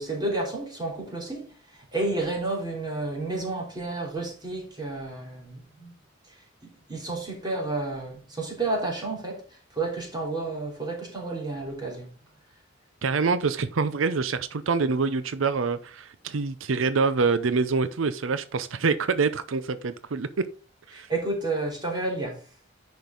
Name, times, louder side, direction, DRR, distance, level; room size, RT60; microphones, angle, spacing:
voice 1, 0.0-1.5 1.7-5.9 6.6-9.4 9.7-12.1 20.9-22.4, right 2 dB, 20° right, 3.4 m, -31 dB
voice 2, 13.0-20.3 20.9-21.1, right 4 dB, 90° right, 0.6 m, -26 dB
10.5 x 5.3 x 3.9 m
head